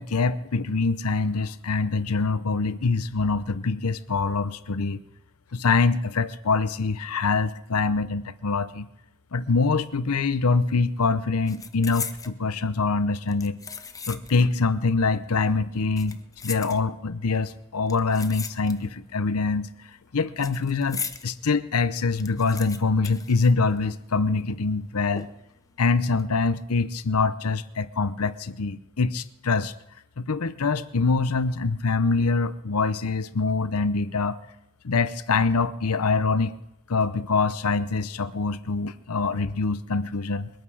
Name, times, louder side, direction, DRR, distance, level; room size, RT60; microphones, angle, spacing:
voice 1, 0.0-5.0 5.5-8.9 9.3-13.6 14.1-16.2 16.4-19.7 20.1-25.3 25.8-29.7 30.2-34.4 34.8-36.5 36.9-40.5, left 4 dB, 85° left, 14 dB, 0.8 m, -24 dB
sound 1, 10.4-10.7 11.0-12.4 13.1-14.5 14.8-14.9 15.8-17.2 17.9-19.1 19.3-21.3 21.7-21.8 22.0-24.1 24.4-24.5 25.2-25.6 26.0-26.2, left 6 dB, 15° left, 0.7 m, -38 dB
22.5 x 9.1 x 6.3 m, 0.89 s
head